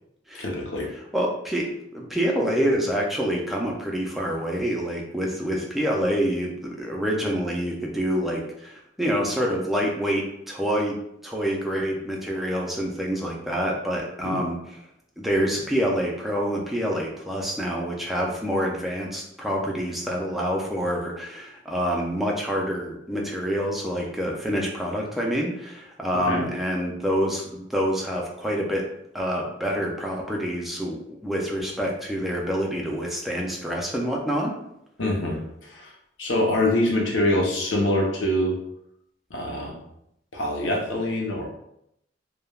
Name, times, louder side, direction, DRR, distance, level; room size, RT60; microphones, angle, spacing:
voice 1, 0.4-0.9 14.2-14.4 26.1-26.4 35.0-35.9 36.2-38.6 39.3-39.8 40.3-41.4, left 1 dB, 85° left, -1 dB, 0.7 m, -25 dB
voice 2, 1.1-11.0 11.2-14.6 15.2-28.8 29.1-34.5, equal, ahead, -2 dB, 0.4 m, -27 dB
3.2 x 2.1 x 2.3 m, 0.78 s
head